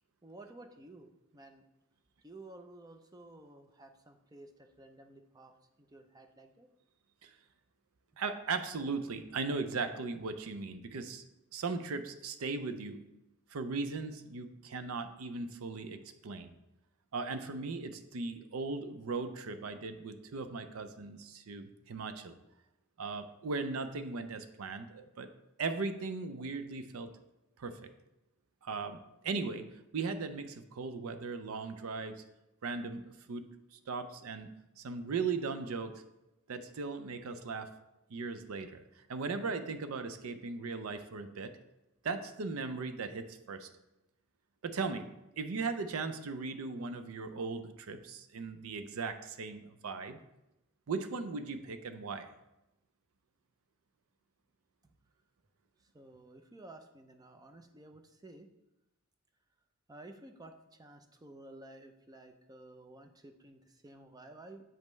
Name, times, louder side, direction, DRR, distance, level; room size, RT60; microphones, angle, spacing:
voice 1, 0.2-1.6 2.2-6.7 55.8-58.5 59.9-64.6, right 2 dB, 20° right, 6 dB, 0.4 m, -53 dB
voice 2, 8.2-11.2 11.5-13.0 13.5-16.5 17.1-22.4 23.0-25.3 25.6-27.1 27.6-27.9 28.6-29.7 29.9-32.2 32.6-33.5 33.7-34.5 34.8-36.0 36.5-37.7 38.1-38.8 39.1-41.5 42.0-43.7 44.6-45.1 45.4-50.2 50.9-52.3, right 4 dB, 85° right, 9 dB, 0.5 m, -38 dB
7.4 x 5.3 x 3.1 m, 0.91 s
head